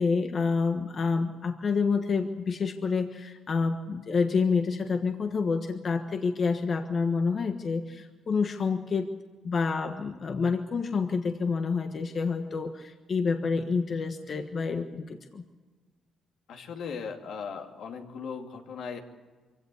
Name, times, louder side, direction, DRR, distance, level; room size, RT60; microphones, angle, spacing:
voice 1, 0.0-9.1 9.4-15.4, left 4 dB, 45° left, 6 dB, 1.4 m, -28 dB
voice 2, 16.5-19.0, left 6 dB, 75° left, 3 dB, 2.4 m, -38 dB
23.5 x 17.0 x 8.4 m, 1.4 s
cardioid pair, 90°, 0 cm